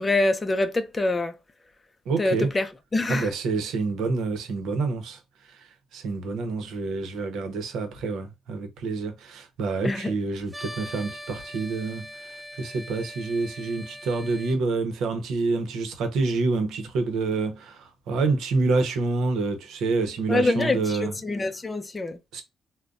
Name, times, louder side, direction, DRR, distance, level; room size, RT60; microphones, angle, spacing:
voice 1, 0.0-1.3 2.2-3.3 9.8-10.1 20.3-20.8 21.2-22.2, left 2 dB, 25° left, 0.5 m, -25 dB
voice 2, 2.1-2.5 3.1-5.2 5.5-21.2 22.3-22.4, right 3 dB, 80° right, 0.8 m, -27 dB
sound 1, 10.5-14.6, equal, 10° right, 0.9 m, -41 dB
3.8 x 2.1 x 2.3 m
cardioid pair, 90°, 0 cm